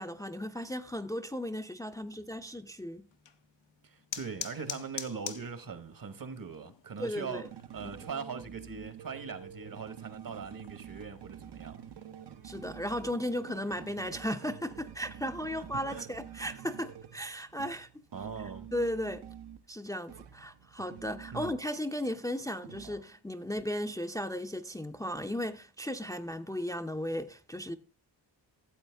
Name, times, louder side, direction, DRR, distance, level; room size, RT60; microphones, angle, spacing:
voice 1, 0.0-3.1 7.0-7.5 7.8-7.9 12.4-17.9 18.7-19.2 19.7-27.8, equal, 10° left, 0.6 m, -36 dB
sound 1, 3.1-14.2, left 8 dB, 80° left, 1.0 m, -48 dB
voice 2, 3.8-7.5 7.7-11.8 15.6-16.1 16.3-16.5 18.1-18.7 21.3-21.5, right 5 dB, 50° right, 1.2 m, -41 dB
sound 2, 7.3-19.6 20.1-21.8 22.0-23.2 23.6-23.7, right 9 dB, 65° right, 0.8 m, -48 dB
13.0 x 7.9 x 3.4 m
cardioid pair, 80°, 42 cm